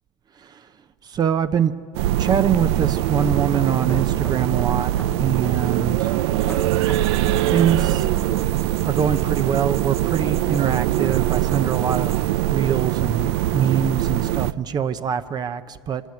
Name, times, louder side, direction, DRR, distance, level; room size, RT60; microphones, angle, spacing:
voice 1, 1.0-1.7 2.2-4.9 5.2-6.2 7.5-8.2 8.8-12.2 12.5-16.0, right 8 dB, 30° right, 11 dB, 0.6 m, -23 dB
sound 1, 1.9-14.5, right 14 dB, 80° right, 0.5 m, -22 dB
sound 2, 3.1-10.6 10.9-11.2, left 3 dB, 10° left, 0.8 m, -44 dB
sound 3, 6.4-12.3, right 10 dB, 50° right, 2.4 m, -44 dB
25.5 x 19.5 x 9.5 m, 2.6 s
supercardioid pair, 125°, 14 cm